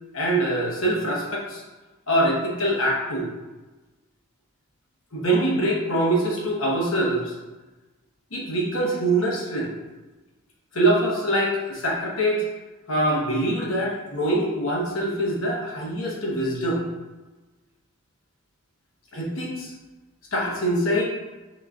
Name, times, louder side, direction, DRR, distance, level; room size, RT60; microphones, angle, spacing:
voice 1, 0.1-1.6 2.1-3.3 5.1-7.3 8.3-9.7 10.7-12.4 12.9-16.8 19.1-19.7 20.3-21.0, right 1 dB, 70° left, -3 dB, 1.1 m, -24 dB
5.0 x 3.7 x 2.4 m, 1.2 s
head